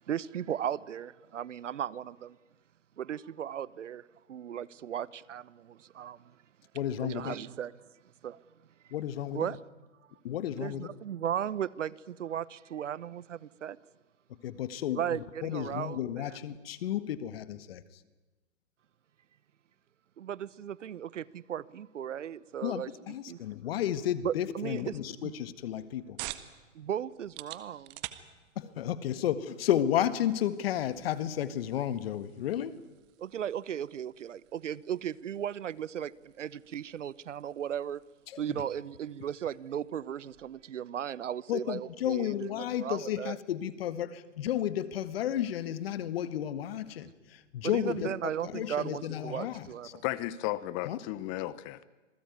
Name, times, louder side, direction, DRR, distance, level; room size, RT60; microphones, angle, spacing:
voice 1, 0.1-2.4 3.0-6.3 7.0-7.7 8.2-8.4 9.3-9.6 10.6-13.8 14.9-16.4 20.2-22.9 23.3-23.4 24.2-25.0 25.2-25.3 26.7-28.0 33.2-38.0 38.4-43.3 47.6-50.0, right 9 dB, 70° right, 1.1 m, -36 dB
voice 2, 6.7-7.4 8.9-9.5 10.2-10.9 14.4-18.0 22.6-26.2 28.6-32.7 38.3-38.4 41.5-48.2 48.4-49.9 50.8-51.0, left 11 dB, 50° left, 1.9 m, -32 dB
sound 1, 25.5-40.7, right 16 dB, 30° right, 1.6 m, -51 dB
voice 3, 49.9-51.9, left 16 dB, 25° left, 0.9 m, -34 dB
27.0 x 20.0 x 9.5 m
hypercardioid pair, 140°, 38 cm